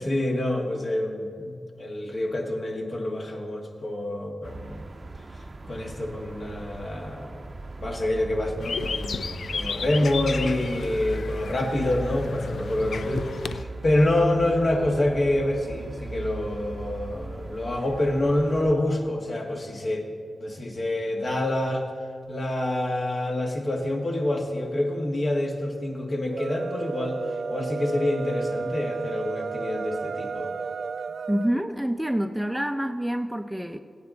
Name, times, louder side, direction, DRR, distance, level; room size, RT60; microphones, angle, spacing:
voice 1, 0.0-4.8 5.7-7.4 7.8-20.1 20.4-21.9 22.3-27.2 27.5-30.5, left 1 dB, 55° left, 0 dB, 1.8 m, -27 dB
sound 1, 4.4-18.7, right 2 dB, 45° right, 0.7 m, -38 dB
sound 2, 8.6-13.6, left 5 dB, 75° left, 0.3 m, -34 dB
sound 3, 26.2-31.5, right 4 dB, 75° right, 0.3 m, -32 dB
voice 2, 31.3-33.8, equal, 5° right, 8 dB, 0.6 m, -27 dB
16.0 x 9.4 x 4.0 m, 2.2 s
cardioid pair, 40°, 0 cm